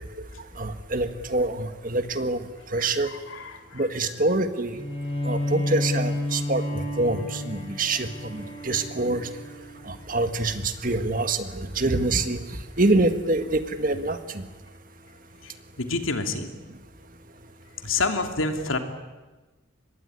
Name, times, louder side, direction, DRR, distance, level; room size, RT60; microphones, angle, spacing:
voice 1, 0.6-2.4 2.7-3.1 3.7-4.7 5.2-9.3 9.9-12.4 12.8-14.4, right 2 dB, 40° right, 9 dB, 1.7 m, -25 dB
voice 2, 2.8-3.8 15.8-16.5 17.8-18.8, left 3 dB, 80° left, 6 dB, 2.9 m, -28 dB
Bowed string instrument, 4.7-10.2, left 1 dB, 30° left, 7.3 m, -31 dB
25.0 x 21.5 x 9.8 m, 1.2 s
head